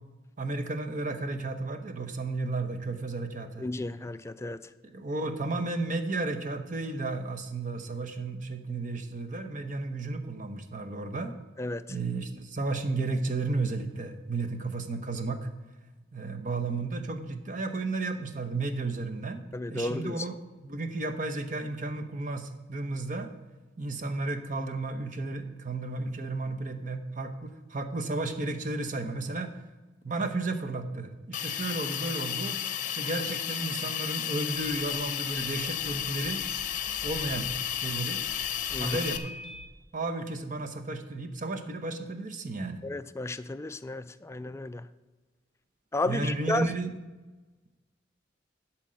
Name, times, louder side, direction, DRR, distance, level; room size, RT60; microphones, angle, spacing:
voice 1, 0.4-3.7 4.8-11.3 11.9-15.5 16.1-19.4 19.7-20.4 20.6-23.3 23.8-29.5 30.0-32.6 32.9-36.4 37.0-38.2 38.8-39.3 39.9-42.8 46.1-46.9, right 3 dB, 45° right, 7 dB, 0.9 m, -33 dB
voice 2, 3.6-4.6 11.6-11.8 19.5-20.2 38.7-39.0 42.8-44.9 45.9-46.7, left 2 dB, 15° left, 13 dB, 0.3 m, -33 dB
Hiss, 31.3-39.2, left 10 dB, 45° left, 0.7 m, -33 dB
sound 1, 34.5-39.7, left 1 dB, 5° right, 2.8 m, -47 dB
11.5 x 4.4 x 7.5 m, 1.2 s
head